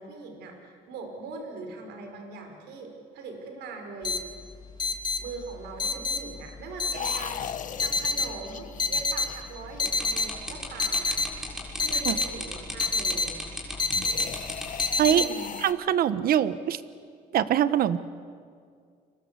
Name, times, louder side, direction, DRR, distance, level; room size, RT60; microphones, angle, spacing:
voice 1, 0.0-4.2 5.2-11.2 11.8-13.3 15.1-15.5, right 3 dB, 80° right, 4 dB, 5.5 m, -41 dB
sound 1, 4.0-15.3, left 4 dB, 25° left, 2.6 m, -28 dB
sound 2, 6.9-10.1 13.9-15.7, left 8 dB, 50° left, 1.7 m, -38 dB
sound 3, 9.8-15.0, left 1 dB, 5° right, 6.7 m, -36 dB
voice 2, 15.6-16.8 17.3-18.0, right 10 dB, 60° right, 14 dB, 1.2 m, -23 dB
30.0 x 24.0 x 8.3 m, 2.2 s
cardioid pair, 110°, 17 cm